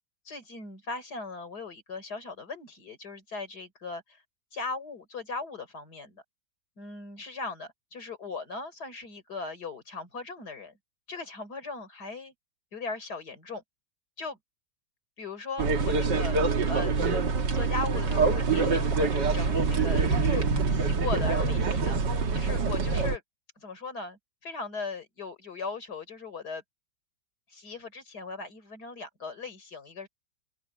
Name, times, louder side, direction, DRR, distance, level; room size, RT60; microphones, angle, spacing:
voice 1, 0.3-4.0 4.5-6.2 6.8-10.8 11.1-12.3 12.7-13.6 14.2-14.4 15.2-16.4 16.7-16.9 17.5-22.0 22.3-23.2 23.6-26.6 27.5-30.1, left 4 dB, 65° left, 4.6 m, -38 dB
sound 1, 15.6-23.2, right 4 dB, 80° right, 2.5 m, -25 dB
open air
omnidirectional pair, 1.8 m